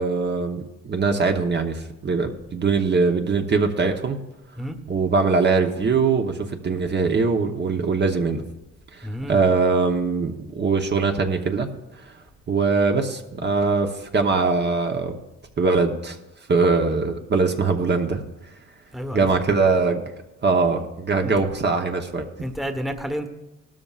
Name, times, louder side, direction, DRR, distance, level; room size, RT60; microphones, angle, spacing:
voice 1, 0.0-4.2 4.9-8.4 8.9-11.7 12.0-12.1 12.5-15.2 15.6-16.2 16.5-18.2 19.1-20.0 20.4-22.3, right 4 dB, 35° right, 4 dB, 1.1 m, -22 dB
voice 2, 9.0-9.4 18.9-19.3 21.2-21.3 22.4-23.3, equal, ahead, 6 dB, 1.2 m, -30 dB
17.5 x 13.0 x 2.5 m, 0.98 s
cardioid pair, 90°, 30 cm